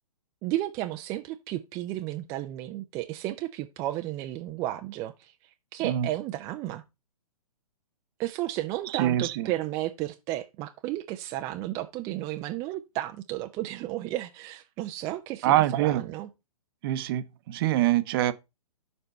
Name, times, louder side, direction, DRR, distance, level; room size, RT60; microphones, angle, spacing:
voice 1, 0.4-5.3 5.7-6.8 8.2-16.3, right 15 dB, 15° right, 0.3 m, -33 dB
voice 2, 8.9-9.5 15.4-16.0 16.8-18.3, right 13 dB, 35° right, 0.7 m, -24 dB
6.8 x 4.4 x 5.2 m
hypercardioid pair, 130°, 20 cm